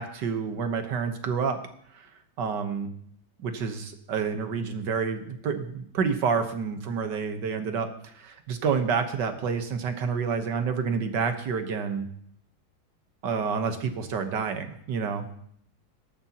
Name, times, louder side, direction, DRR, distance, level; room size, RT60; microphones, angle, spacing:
voice 1, 0.0-1.6 1.9-2.1 2.4-2.9 3.4-12.1 13.2-15.3, right 6 dB, 60° right, 7 dB, 1.7 m, -29 dB
18.0 x 13.0 x 2.9 m, 0.66 s
omnidirectional pair, 2.2 m